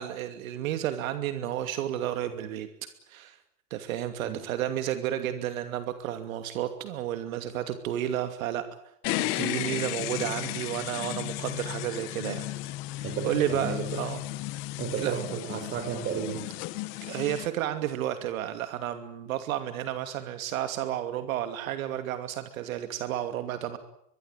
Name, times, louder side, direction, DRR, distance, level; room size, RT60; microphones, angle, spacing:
voice 1, 0.0-2.7 3.1-3.4 3.7-8.6 9.2-12.5 13.0-14.2 15.0-15.2 17.0-23.8, right 11 dB, 60° right, 9 dB, 2.7 m, -32 dB
sound 1, 9.0-17.5, left 18 dB, 25° left, 0.9 m, -34 dB
voice 2, 13.0-13.8 14.8-16.4, right 7 dB, 20° right, 9 dB, 4.6 m, -32 dB
24.0 x 22.5 x 9.2 m, 0.75 s
supercardioid pair, 170°, 47 cm